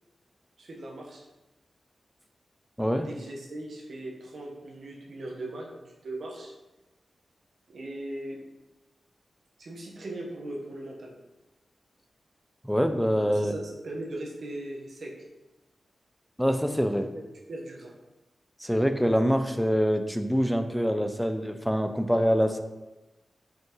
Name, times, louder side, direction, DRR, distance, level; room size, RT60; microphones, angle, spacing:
voice 1, 0.6-1.3 3.0-6.5 7.7-8.4 9.6-11.1 13.2-15.1 17.1-17.2 17.5-17.9, right 1 dB, 65° right, -1 dB, 1.2 m, -39 dB
voice 2, 12.6-13.5 16.4-17.1 18.6-22.6, equal, ahead, 7 dB, 0.4 m, -25 dB
5.7 x 5.4 x 3.1 m, 1.1 s
wide cardioid pair, 135°, 0 cm